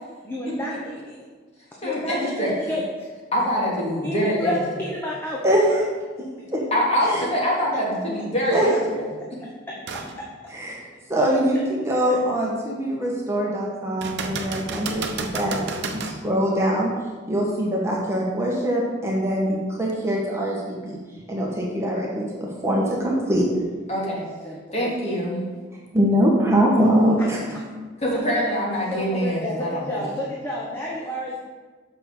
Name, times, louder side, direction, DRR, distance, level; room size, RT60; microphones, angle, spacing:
voice 1, 0.2-1.3 1.8-3.1 4.0-5.4 9.4-9.8 10.2-10.3 12.0-12.2 24.4-24.9 28.9-31.4, left 1 dB, 10° left, -4 dB, 1.0 m, -31 dB
voice 2, 1.8-2.5 3.3-4.5 6.7-8.7 23.9-24.2 24.7-25.4 28.0-30.0, equal, 35° left, -5 dB, 2.7 m, -24 dB
voice 3, 5.4-5.8 6.5-6.6 7.0-7.2 8.5-8.7 8.9-9.0 10.5-10.8 11.1-16.9 17.3-21.0 21.3-23.4 25.9-27.4, equal, 15° right, -3 dB, 1.3 m, -23 dB
sound 1, 9.9-10.1 10.7-10.8 14.0-16.2 19.9-20.0, right 4 dB, 60° right, 0.8 m, -31 dB
6.2 x 5.8 x 6.7 m, 1.4 s
head